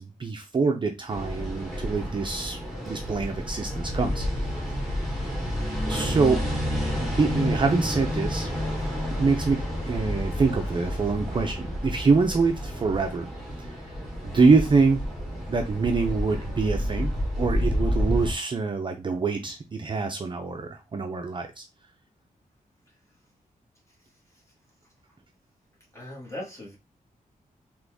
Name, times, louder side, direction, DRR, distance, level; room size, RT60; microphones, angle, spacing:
voice 1, 0.0-2.6 2.9-4.2 5.9-6.4 7.0-8.5 9.1-9.6 9.8-13.3 14.2-15.0 15.5-21.6, right 4 dB, 35° right, 4 dB, 0.5 m, -25 dB
sound 1, 1.1-18.3, equal, ahead, 1.5 m, -30 dB
sound 2, 4.5-11.1, left 1 dB, 40° left, 1.6 m, -47 dB
voice 2, 23.9-24.4 24.8-25.2 25.9-26.8, left 1 dB, 20° left, -2 dB, 1.4 m, -42 dB
3.9 x 3.0 x 3.5 m, 0.26 s
wide cardioid pair, 175°, 15 cm